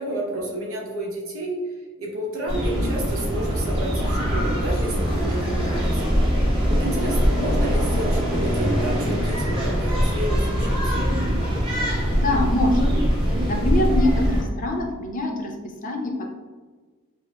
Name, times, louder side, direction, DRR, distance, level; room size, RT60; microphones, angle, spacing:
voice 1, 0.0-1.6 2.0-6.4 6.7-11.1, right 1 dB, 75° right, -1 dB, 0.8 m, -31 dB
sound 1, 2.5-14.4, equal, 25° right, 1.0 m, -22 dB
voice 2, 12.2-12.9 13.5-15.6 15.8-16.3, left 1 dB, 40° left, 1 dB, 0.4 m, -24 dB
5.0 x 2.0 x 2.2 m, 1.4 s
head